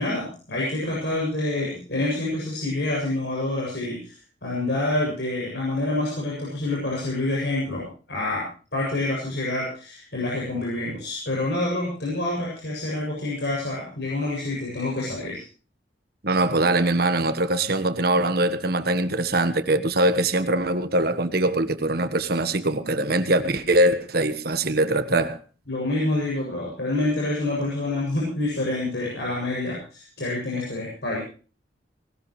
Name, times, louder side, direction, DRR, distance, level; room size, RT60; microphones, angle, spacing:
voice 1, 0.0-4.2 4.4-8.5 8.7-15.4 25.7-31.2, left 2 dB, 70° left, -4 dB, 7.5 m, -27 dB
voice 2, 16.2-25.4, right 2 dB, 60° right, 10 dB, 1.4 m, -22 dB
20.0 x 18.5 x 3.2 m, 0.37 s
head